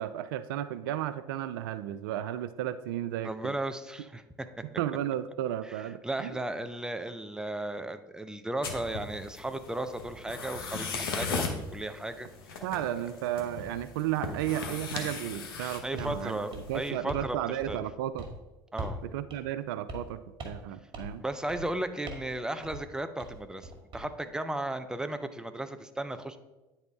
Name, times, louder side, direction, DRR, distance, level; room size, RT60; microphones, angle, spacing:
voice 1, 0.0-3.5 4.8-6.4 12.6-16.4 16.7-18.3 19.0-20.2 20.4-21.2, right 12 dB, 75° right, 13 dB, 0.4 m, -33 dB
voice 2, 3.2-4.5 5.6-12.6 15.8-17.8 18.7-19.0 21.2-26.4, right 1 dB, 5° right, 8 dB, 0.6 m, -35 dB
sound 1, 8.6-16.9, left 4 dB, 85° left, 0.9 m, -38 dB
sound 2, 16.0-16.2 16.5-17.3 17.6-17.9 18.2-18.4 18.8-19.0 19.3-19.4 19.9-20.1 20.4-20.7 20.9-21.2 21.5-21.7 22.1-22.3 22.6-22.8 23.2-24.1, right 1 dB, 45° right, 1.8 m, -40 dB
9.5 x 4.2 x 3.6 m, 1.1 s
hypercardioid pair, 75°, 12 cm